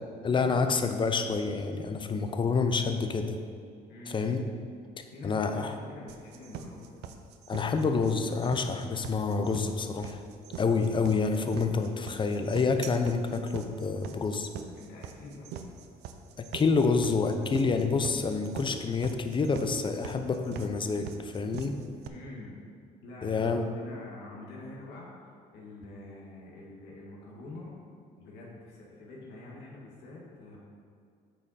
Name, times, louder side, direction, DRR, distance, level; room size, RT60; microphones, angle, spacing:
voice 1, 0.2-3.4 4.1-4.4 5.2-5.7 7.5-10.2 10.6-14.5 16.5-21.8 23.2-23.7, left 4 dB, 30° left, 7 dB, 0.6 m, -28 dB
voice 2, 3.9-4.4 5.1-6.9 14.7-15.6 22.1-22.6 23.0-27.8 28.2-30.6, left 2 dB, 85° left, -4 dB, 1.6 m, -46 dB
sound 1, 6.1-22.1, right 8 dB, 80° right, 0.6 m, -42 dB
8.8 x 5.2 x 4.1 m, 2.3 s
cardioid pair, 110°, 17 cm